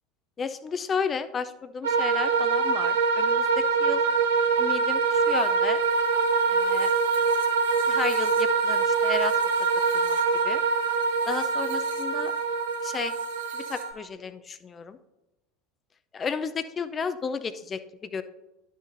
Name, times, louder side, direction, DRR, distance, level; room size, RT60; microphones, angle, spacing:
voice 1, 0.4-4.0 4.6-5.8 6.5-6.9 7.9-9.3 10.0-10.2 10.4-10.6 11.3-12.3 12.8-13.2 13.5-15.0 16.1-18.2, left 5 dB, 30° left, 13 dB, 0.5 m, -33 dB
sound 1, 1.8-13.9, right 5 dB, 70° right, 1.1 m, -24 dB
11.5 x 6.5 x 2.6 m, 1.0 s
figure-of-eight pair, 75°, 0 cm